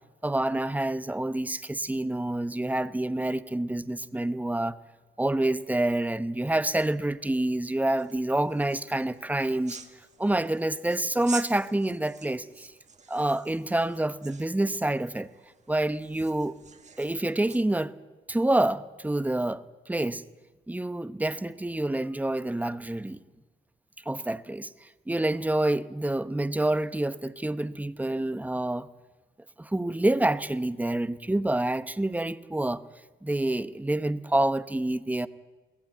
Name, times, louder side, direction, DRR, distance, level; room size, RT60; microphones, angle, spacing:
voice 1, 0.2-4.8 5.2-9.8 10.2-12.7 13.1-15.3 15.7-16.5 17.0-17.9 18.3-20.2 20.7-23.2 24.0-28.9 29.6-32.8 33.2-35.3, right 1 dB, 10° right, 0.9 m, -27 dB
sound 1, 8.0-17.7, right 5 dB, 35° right, 2.0 m, -46 dB
23.0 x 16.5 x 9.1 m
cardioid pair, 90°, 20 cm